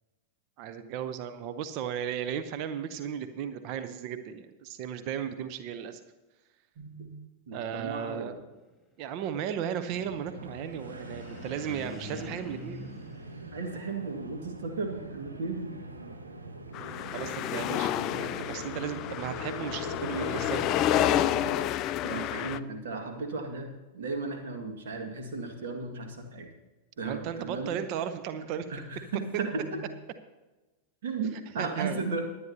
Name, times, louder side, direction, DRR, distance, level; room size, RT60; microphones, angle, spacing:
voice 1, 0.6-6.0 7.5-8.4 9.0-12.8 17.1-20.8 27.0-28.7 31.6-32.1, right 8 dB, 45° right, 11 dB, 0.7 m, -35 dB
voice 2, 6.8-7.1 7.5-8.4 13.5-15.7 22.0-26.5 27.0-27.7 28.7-29.9 31.0-32.3, right 3 dB, 60° right, 4 dB, 1.8 m, -35 dB
sound 1, 9.9-21.7, right 2 dB, 75° right, 1.1 m, -43 dB
sound 2, 10.6-14.1, left 2 dB, ahead, 3.3 m, -45 dB
sound 3, 16.7-22.6, left 12 dB, 35° left, 0.4 m, -29 dB
20.0 x 9.5 x 2.8 m, 1.1 s
figure-of-eight pair, 90°, 0 cm